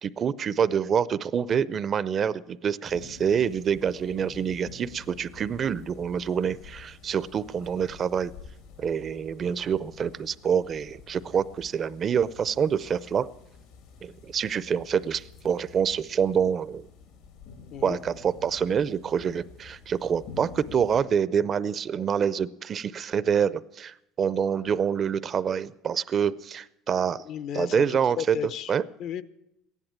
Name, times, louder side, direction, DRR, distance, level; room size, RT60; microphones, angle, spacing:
voice 1, 0.0-8.3 8.8-13.3 14.0-16.9 17.8-27.2 27.5-28.4 28.7-28.8, right 7 dB, 35° right, 18 dB, 0.5 m, -26 dB
sound 1, 2.8-21.0, left 5 dB, 80° left, 2.7 m, -49 dB
voice 2, 27.2-27.8 28.2-28.7 29.0-29.2, left 10 dB, 55° left, 15 dB, 0.8 m, -33 dB
15.0 x 11.0 x 8.8 m, 0.83 s
cardioid pair, 125°, 0 cm